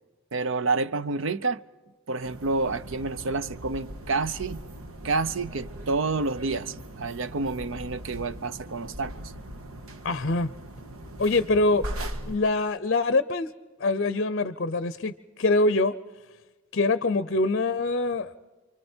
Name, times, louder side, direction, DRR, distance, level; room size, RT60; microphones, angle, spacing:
voice 1, 0.3-1.6 2.1-4.6 5.0-9.3, right 3 dB, 60° right, 0.6 m, -29 dB
sound 1, 2.2-12.4, right 1 dB, 85° right, 1.6 m, -40 dB
voice 2, 10.0-10.5 11.2-11.8 12.3-13.5 13.8-15.1 15.4-15.9 16.7-18.3, left 2 dB, 50° left, 0.6 m, -24 dB
29.0 x 24.0 x 4.4 m
head